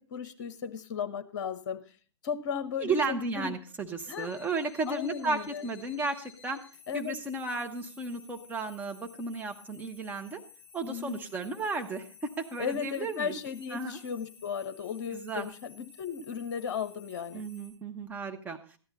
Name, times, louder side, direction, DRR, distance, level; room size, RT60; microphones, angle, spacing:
voice 1, 0.0-1.8 2.2-3.5 4.1-4.3 4.9-5.6 6.9-7.2 10.8-11.2 12.6-17.4, left 7 dB, 45° left, 10 dB, 1.1 m, -35 dB
voice 2, 2.7-6.6 6.9-10.4 10.7-13.3 13.7-14.0 15.1-15.5 17.3-18.6, right 3 dB, 10° right, 4 dB, 1.1 m, -34 dB
sound 1, 4.1-17.7, left 6 dB, 20° left, 6.7 m, -55 dB
13.5 x 10.5 x 4.0 m, 0.39 s
figure-of-eight pair, 110°, 15 cm